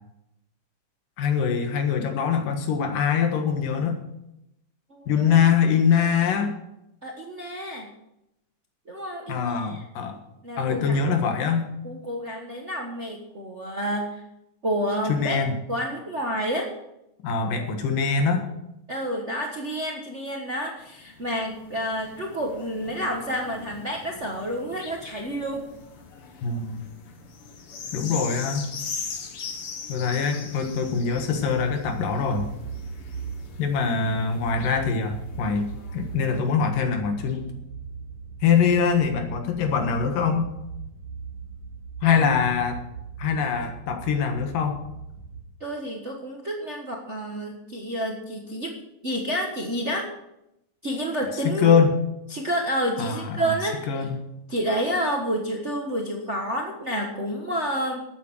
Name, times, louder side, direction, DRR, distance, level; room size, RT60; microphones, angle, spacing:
voice 1, 1.2-4.0 5.1-6.5 9.3-10.2 10.6-11.7 15.1-15.5 17.2-18.5 26.4-26.9 27.9-28.7 29.9-32.5 33.6-37.6 38.4-40.5 42.0-42.8 43.2-44.8 51.4-51.9 53.0-53.6 53.9-54.2, left 6 dB, 90° left, 5 dB, 3.2 m, -23 dB
voice 2, 4.9-5.3 7.0-7.9 8.9-9.8 10.4-11.0 11.8-14.2 14.6-15.4 15.7-16.7 18.9-25.7 42.0-42.3 45.6-48.8 49.0-50.1 50.8-51.8 52.3-54.1 54.5-58.0, equal, 60° right, 0 dB, 0.7 m, -29 dB
sound 1, 20.8-36.6 37.3-37.4, left 5 dB, 50° left, 1.9 m, -41 dB
sound 2, 30.6-45.4, right 5 dB, 25° left, 3.7 m, -39 dB
13.0 x 8.6 x 6.3 m, 0.86 s
omnidirectional pair, 3.7 m